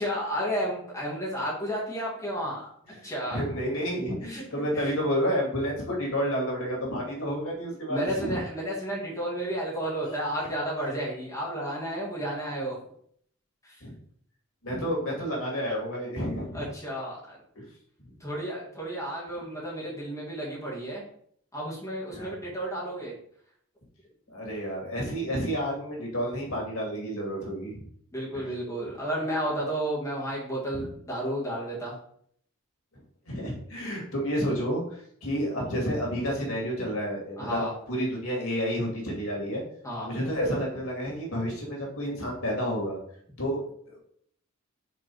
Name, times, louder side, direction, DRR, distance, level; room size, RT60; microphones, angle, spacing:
voice 1, 0.0-2.7 3.0-3.4 3.8-4.9 7.9-12.8 13.6-13.7 16.5-17.4 18.2-21.0 21.5-23.1 28.1-31.9 37.4-37.7 39.8-40.1, equal, 15° left, -6 dB, 1.9 m, -32 dB
voice 2, 2.9-8.4 13.8-13.9 14.6-16.7 17.6-17.7 22.1-22.4 24.3-27.8 28.3-28.5 30.7-30.9 33.3-39.6 40.1-43.0 43.4-44.0, equal, 85° left, -2 dB, 2.3 m, -30 dB
5.3 x 3.9 x 4.6 m, 0.64 s
head